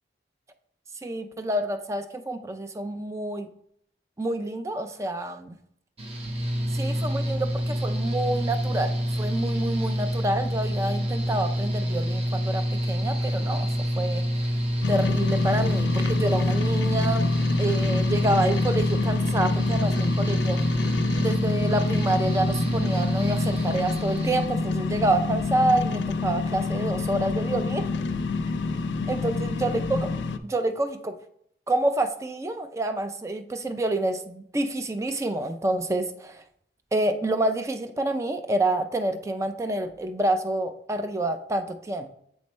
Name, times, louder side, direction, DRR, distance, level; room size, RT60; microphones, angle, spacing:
voice 1, 1.0-3.5 4.2-5.6 6.7-14.3 14.9-17.3 17.6-20.6 21.2-27.9 29.1-30.1 30.4-31.2 31.7-36.4 36.9-42.1, right 1 dB, 15° right, 8 dB, 0.4 m, -28 dB
Mechanical fan, 6.0-24.5, equal, 35° right, 0.8 m, -27 dB
sound 1, 14.8-30.4, left 3 dB, 80° left, 0.5 m, -28 dB
8.1 x 3.2 x 4.3 m, 0.70 s
head